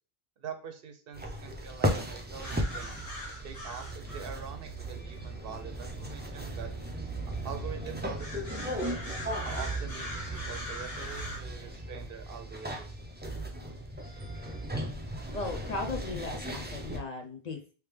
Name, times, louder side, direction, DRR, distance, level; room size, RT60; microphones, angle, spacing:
voice 1, 0.4-3.0 3.4-6.7 7.4-8.9 9.4-12.9, right 7 dB, 70° right, 7 dB, 0.8 m, -44 dB
sound 1, 1.1-17.0, equal, 15° right, 0.4 m, -37 dB
sound 2, 2.4-11.4, right 2 dB, 70° left, 2.1 m, -42 dB
voice 2, 15.3-17.7, left 3 dB, 50° left, 3 dB, 0.6 m, -37 dB
3.3 x 3.2 x 3.2 m, 0.37 s
omnidirectional pair, 1.0 m